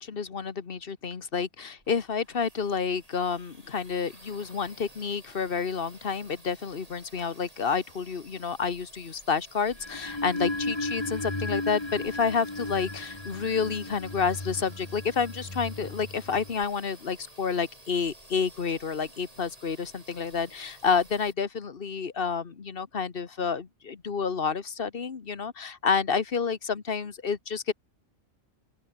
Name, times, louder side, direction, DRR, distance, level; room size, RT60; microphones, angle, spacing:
voice 1, 0.0-27.7, left 5 dB, 50° left, 1.5 m, -29 dB
sound 1, 1.8-21.3, right 1 dB, 30° right, 5.9 m, -53 dB
sound 2, 9.7-16.6, left 2 dB, 20° left, 2.0 m, -35 dB
open air
omnidirectional pair, 1.2 m